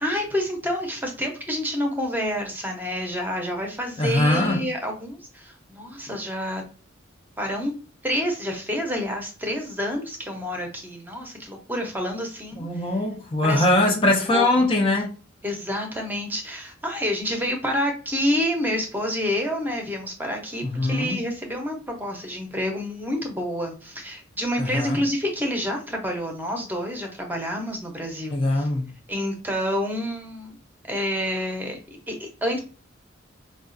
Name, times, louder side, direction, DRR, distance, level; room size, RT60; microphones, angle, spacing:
voice 1, 0.0-6.6 7.4-7.7 8.0-12.7 13.4-14.0 14.3-14.7 15.4-28.7 29.1-30.6 30.9-31.8 32.1-32.6, equal, 10° right, 0.7 m, -28 dB
voice 2, 4.0-4.6 12.6-15.1 20.7-21.2 24.6-25.0 28.3-28.9, left 2 dB, 25° left, 0.5 m, -22 dB
4.7 x 2.4 x 2.5 m
head